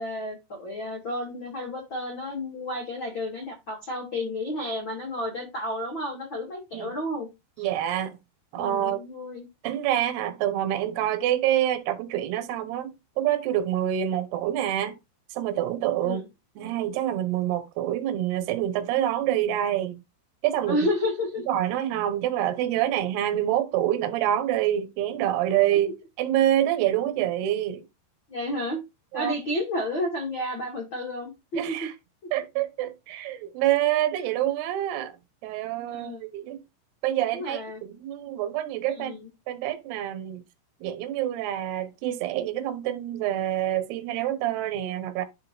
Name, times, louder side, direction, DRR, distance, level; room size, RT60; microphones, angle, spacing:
voice 1, 0.0-7.3 7.6-7.7 8.6-9.5 16.0-16.2 20.7-21.4 25.7-25.8 28.3-28.8 29.1-31.9 35.9-36.2 37.3-37.8 39.0-39.3, left 1 dB, 85° left, 1.0 m, -31 dB
voice 2, 7.6-8.2 8.5-9.0 9.6-14.9 15.3-16.2 16.6-20.0 20.4-20.8 21.5-25.9 26.2-27.8 29.1-29.4 31.5-31.9 32.3-35.2 35.4-36.6 37.0-39.2 39.5-40.4 40.8-45.3, right 12 dB, 70° right, 2.7 m, -26 dB
10.5 x 3.7 x 4.4 m
omnidirectional pair, 5.8 m